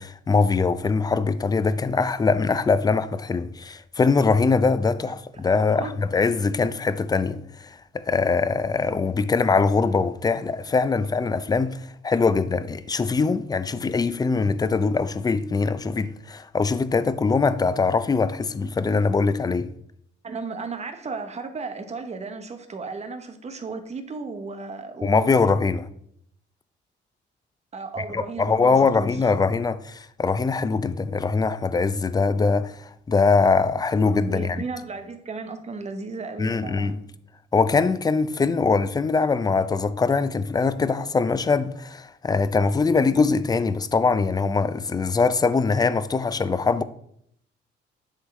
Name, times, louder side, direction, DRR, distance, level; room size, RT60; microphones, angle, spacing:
voice 1, 0.0-19.7 25.0-25.9 28.0-34.6 36.4-37.0 37.5-46.8, left 4 dB, 20° left, 0.4 m, -22 dB
voice 2, 5.6-6.0 20.2-25.3 27.7-29.2 34.3-37.0, right 4 dB, 35° right, 1.0 m, -35 dB
9.5 x 3.9 x 3.2 m
cardioid pair, 90°, 20 cm